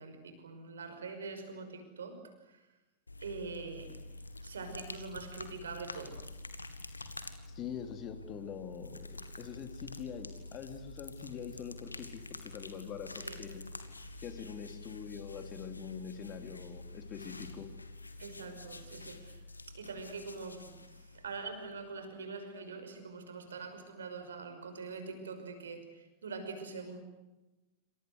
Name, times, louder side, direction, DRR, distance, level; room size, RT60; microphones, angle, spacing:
voice 1, 0.0-2.6 3.2-6.2 13.1-13.4 18.2-27.0, right 4 dB, 70° right, 8 dB, 5.7 m, -44 dB
sound 1, 3.1-22.0, left 2 dB, 80° left, 2.1 m, -47 dB
voice 2, 7.5-13.7 14.2-17.7, left 8 dB, 35° left, 8 dB, 3.3 m, -44 dB
28.0 x 26.5 x 8.1 m, 1.0 s
figure-of-eight pair, 90°, 0 cm